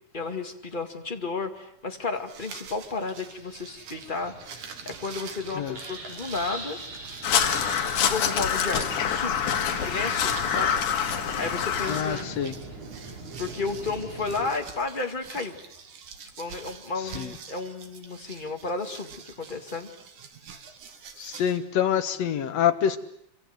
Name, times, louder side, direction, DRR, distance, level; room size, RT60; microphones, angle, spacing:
voice 1, 0.1-6.8 7.9-10.7 11.4-12.4 13.1-15.6 16.4-19.9, left 4 dB, 20° left, 4 dB, 1.8 m, -33 dB
sound 1, 2.1-21.6, right 6 dB, 85° right, 3.6 m, -45 dB
sound 2, 3.3-14.5, right 2 dB, 70° right, 6.4 m, -42 dB
Crow, 7.2-12.2, left 8 dB, 80° left, 3.2 m, -26 dB
voice 2, 11.9-12.5 17.1-17.3 21.2-23.0, left 9 dB, 60° left, 8 dB, 2.5 m, -26 dB
26.0 x 25.0 x 7.9 m, 0.71 s
omnidirectional pair, 3.5 m